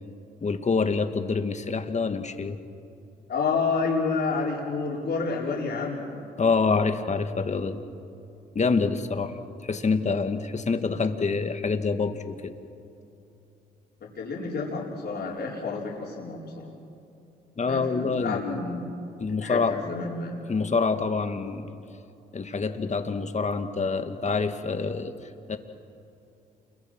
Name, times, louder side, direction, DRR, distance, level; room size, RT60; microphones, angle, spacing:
voice 1, 0.4-2.6 6.4-7.8 8.6-9.3 9.6-12.5 17.6-18.4 19.2-19.7 20.5-21.8 22.3-25.1 25.5-25.6, left 4 dB, 40° left, 7 dB, 2.0 m, -26 dB
voice 2, 3.3-6.1 14.1-16.7 17.7-18.9 19.4-20.3, left 4 dB, 60° left, -3 dB, 4.9 m, -29 dB
28.5 x 23.0 x 6.2 m, 2.7 s
supercardioid pair, 60°, 19 cm